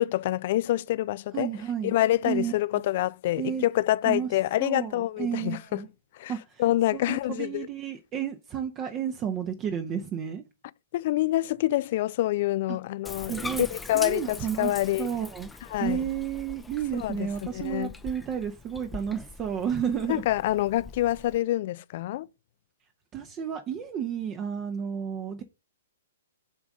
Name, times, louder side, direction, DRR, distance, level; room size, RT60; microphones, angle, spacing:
voice 1, 0.0-1.5 1.8-5.8 6.2-6.3 6.6-7.7 10.9-15.1 15.7-16.0 17.0-17.9 20.1-22.3, left 15 dB, 45° left, 0.4 m, -26 dB
voice 2, 1.3-1.9 2.2-2.5 3.4-3.6 4.1-4.3 4.6-5.9 6.3-6.6 6.9-10.4 12.7-12.8 13.3-13.7 13.9-15.5 15.8-20.2 23.1-25.4, right 8 dB, 25° right, 0.9 m, -32 dB
Bathtub (filling or washing), 13.1-21.4, left 3 dB, 5° left, 0.6 m, -42 dB
7.1 x 3.6 x 6.4 m
figure-of-eight pair, 120°, 0 cm